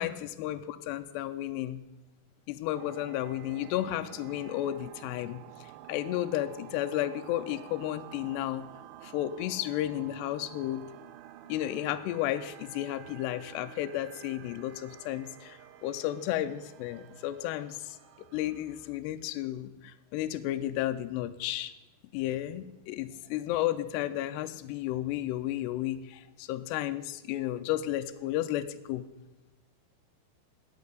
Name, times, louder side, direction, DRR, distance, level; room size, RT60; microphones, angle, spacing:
voice 1, 0.0-1.8 2.5-8.7 9.0-10.8 11.5-18.0 18.3-21.7 22.1-29.0, left 13 dB, 90° left, 9 dB, 2.4 m, -33 dB
sound 1, 2.7-19.0, right 13 dB, 85° right, 2.4 m, -50 dB
8.6 x 8.1 x 8.1 m, 1.0 s
omnidirectional pair, 5.4 m